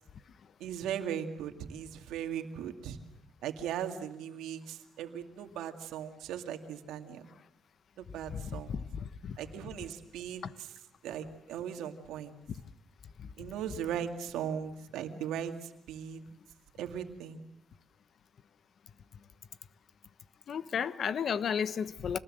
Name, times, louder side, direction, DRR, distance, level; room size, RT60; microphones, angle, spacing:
voice 1, 0.6-3.0 3.4-7.3 8.0-8.7 9.4-10.7 11.0-12.3 13.4-16.2 16.8-17.4, right 9 dB, 90° right, 6 dB, 2.2 m, -38 dB
voice 2, 8.3-9.4 10.4-10.5 13.2-13.3 20.5-22.2, left 7 dB, 55° left, 14 dB, 1.1 m, -33 dB
26.5 x 19.5 x 7.6 m, 0.83 s
cardioid pair, 90°, 0 cm